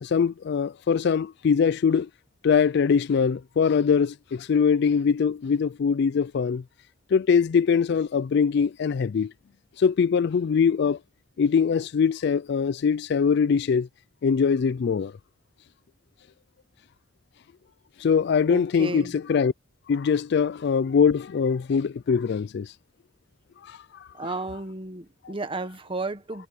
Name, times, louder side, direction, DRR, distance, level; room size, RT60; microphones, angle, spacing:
voice 1, 0.0-2.1 2.4-6.6 7.1-9.3 9.8-11.0 11.4-13.9 14.2-15.1 18.0-19.0 19.3-19.5 19.9-22.7, left 6 dB, 60° left, 0.4 m, -22 dB
voice 2, 18.4-19.2 24.1-26.5, right 2 dB, 30° right, 1.3 m, -33 dB
head